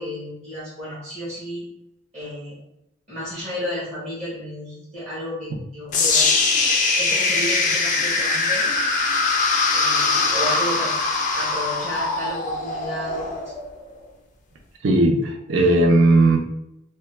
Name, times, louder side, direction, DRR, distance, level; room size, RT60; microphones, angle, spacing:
voice 1, 0.0-1.7 2.1-2.6 3.1-6.3 7.0-8.8 9.7-10.9 11.3-13.5, equal, 30° right, -8 dB, 0.8 m, -32 dB
sound 1, 5.9-14.0, left 3 dB, 35° left, 0.3 m, -22 dB
voice 2, 14.8-16.4, right 2 dB, 65° right, 1 dB, 0.5 m, -17 dB
2.3 x 2.1 x 3.1 m, 0.84 s
head